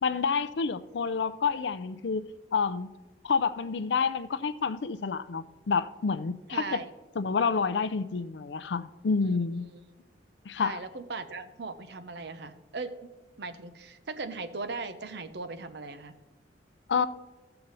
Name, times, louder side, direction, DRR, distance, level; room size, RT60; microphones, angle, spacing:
voice 1, 0.0-2.3 2.5-2.9 3.2-6.8 7.2-9.6 10.5-10.8 16.9-17.1, left 5 dB, 70° left, 0.5 m, -28 dB
voice 2, 6.5-6.9 9.2-9.4 9.7-9.8 10.6-13.1 13.4-16.1, right 3 dB, 65° right, 0.7 m, -38 dB
14.0 x 6.8 x 4.0 m
head